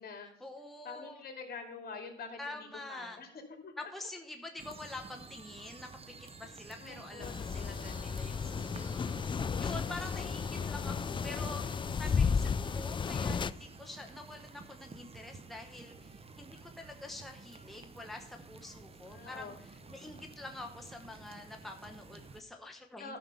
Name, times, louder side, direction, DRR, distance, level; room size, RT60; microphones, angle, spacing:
voice 1, 0.2-1.2 2.4-3.2 3.8-9.2 9.6-23.2, left 2 dB, ahead, 3 dB, 1.0 m, -46 dB
voice 2, 0.8-2.6 2.9-3.3 3.6-3.7 6.8-8.1 19.1-19.6 19.9-20.2 23.0-23.2, left 4 dB, 50° left, 4 dB, 2.5 m, -46 dB
sound 1, 4.6-22.4, right 4 dB, 30° right, 0.9 m, -51 dB
sound 2, 7.2-13.5, left 6 dB, 25° left, 0.3 m, -33 dB
11.5 x 6.0 x 5.5 m, 0.74 s
cardioid pair, 90°, 20 cm